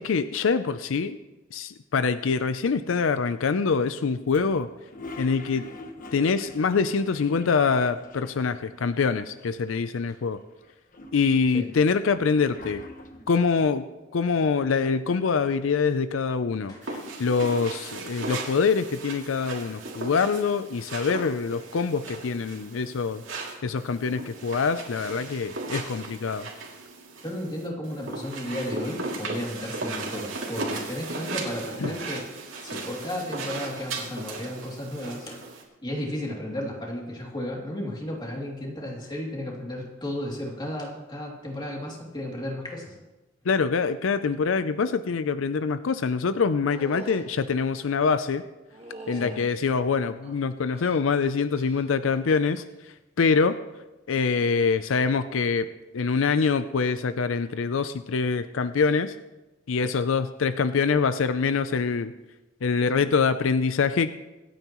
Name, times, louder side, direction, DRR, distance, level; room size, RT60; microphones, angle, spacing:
voice 1, 0.0-1.2 1.5-4.7 5.2-5.6 6.1-10.4 11.1-12.8 13.3-13.8 14.1-23.2 23.6-26.5 31.8-31.9 43.5-48.4 49.1-52.6 53.2-53.6 54.1-55.7 55.9-59.1 59.7-62.1 62.6-64.2, left 5 dB, 85° left, 12 dB, 0.5 m, -24 dB
Toilet flush, 4.3-8.7 8.9-9.0 9.2-10.1 10.6-13.4, left 2 dB, 45° left, 1.3 m, -44 dB
sound 1, 16.8-35.6, right 3 dB, 80° right, 2.6 m, -37 dB
voice 2, 27.2-32.2 32.6-35.4 35.8-42.9 49.1-49.4, left 1 dB, 25° left, -2 dB, 2.7 m, -34 dB
sound 2, 46.6-47.3 48.7-49.5 50.2-51.0 51.5-52.0 52.3-52.8 54.3-54.5, right 2 dB, 30° right, 1.6 m, -44 dB
25.5 x 9.1 x 3.0 m, 1.1 s
head